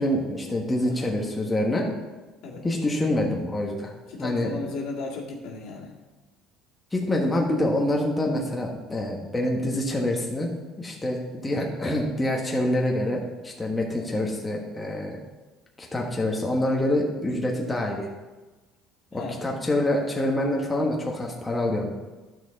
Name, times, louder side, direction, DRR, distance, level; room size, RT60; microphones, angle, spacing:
voice 1, 0.0-1.9 2.6-3.9 4.2-4.5 6.9-10.5 10.8-15.2 15.8-18.1 19.1-21.9, left 1 dB, 15° left, -1 dB, 1.3 m, -26 dB
voice 2, 4.1-5.9 17.3-17.4 19.1-19.5, left 3 dB, 75° left, -2 dB, 2.1 m, -36 dB
10.5 x 6.1 x 4.1 m, 1.2 s
cardioid pair, 120°, 0 cm